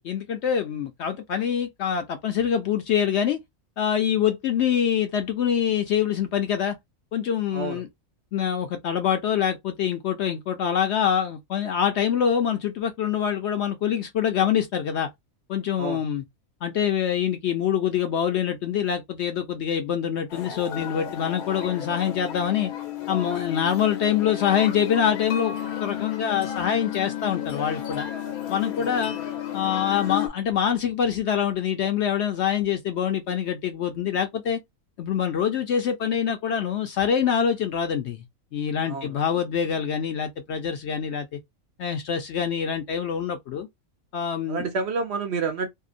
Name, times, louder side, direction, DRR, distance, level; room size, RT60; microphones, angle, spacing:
voice 1, 0.0-3.4 3.8-6.8 7.1-7.9 8.3-15.1 15.5-16.2 16.6-22.7 23.1-25.6 25.8-28.1 28.5-29.2 29.5-34.6 35.0-38.2 38.5-41.4 41.8-43.7 44.1-44.7, left 8 dB, 65° left, 0.7 m, -25 dB
sound 1, 20.3-30.3, left 11 dB, 90° left, 1.1 m, -32 dB
voice 2, 28.8-29.2 38.9-39.2 44.5-45.7, right 4 dB, 60° right, 0.7 m, -29 dB
2.7 x 2.1 x 2.4 m
omnidirectional pair, 1.5 m